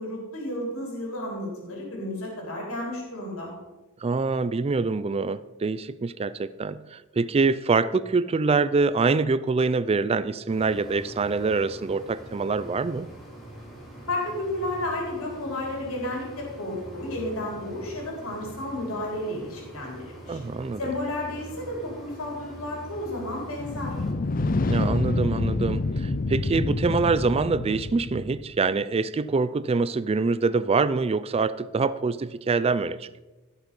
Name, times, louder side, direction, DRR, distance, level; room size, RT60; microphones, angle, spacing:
voice 1, 0.0-3.5 14.1-20.4 20.8-24.0, left 1 dB, 70° left, -1 dB, 3.7 m, -32 dB
voice 2, 4.0-13.1 20.3-20.8 24.7-33.2, right 4 dB, 30° right, 16 dB, 0.4 m, -25 dB
sound 1, 10.5-24.1, right 1 dB, ahead, 3.3 m, -44 dB
sound 2, 23.6-28.5, left 2 dB, 40° left, 0.6 m, -27 dB
16.0 x 6.6 x 5.3 m, 1.1 s
head